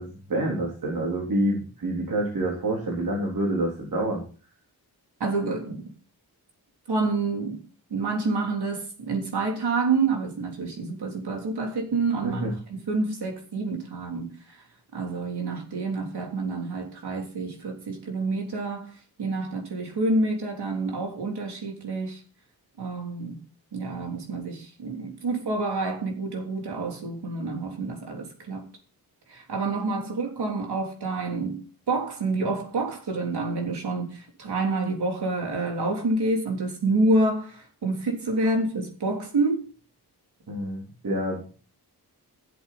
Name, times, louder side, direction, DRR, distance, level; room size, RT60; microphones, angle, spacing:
voice 1, 0.0-4.2 12.2-12.5 40.5-41.6, right 1 dB, 60° right, 3.9 m, -27 dB
voice 2, 5.2-5.8 6.9-7.6 7.9-12.4 12.7-14.6 14.9-18.9 19.2-22.2 22.8-23.4 23.7-28.7 29.3-39.6, right 3 dB, 85° right, 3.5 m, -28 dB
15.5 x 8.1 x 4.2 m
wide cardioid pair, 170°, 38 cm